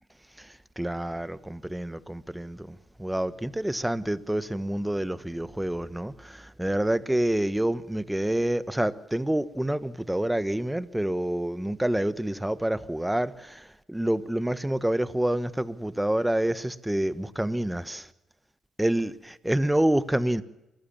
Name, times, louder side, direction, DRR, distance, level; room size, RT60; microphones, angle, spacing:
voice 1, 0.4-18.1 18.8-20.4, right 1 dB, 10° right, 1.3 m, -28 dB
24.5 x 14.5 x 7.3 m
supercardioid pair, 55°, 0 cm